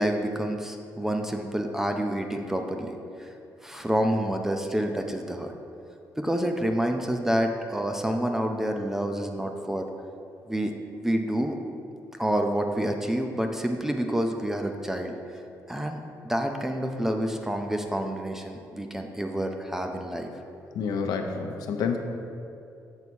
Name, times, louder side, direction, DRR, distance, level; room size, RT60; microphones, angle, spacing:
voice 1, 0.0-3.3 3.6-5.5 6.2-9.9 10.5-10.7 11.0-11.6 12.2-15.1 15.7-20.3, right 1 dB, 5° right, 4 dB, 0.4 m, -28 dB
voice 2, 20.7-22.0, left 6 dB, 75° left, 4 dB, 0.7 m, -28 dB
7.1 x 4.0 x 6.2 m, 2.5 s
cardioid pair, 160°, 7 cm